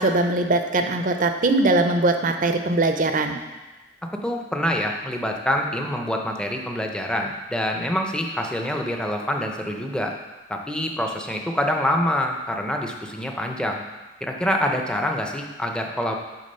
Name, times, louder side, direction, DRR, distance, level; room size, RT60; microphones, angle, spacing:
voice 1, 0.0-3.4, right 2 dB, 45° right, 6 dB, 0.6 m, -21 dB
voice 2, 4.2-10.1 10.5-13.8 14.2-16.2, left 1 dB, 5° left, 2 dB, 0.6 m, -26 dB
8.7 x 3.6 x 5.5 m, 1.1 s
head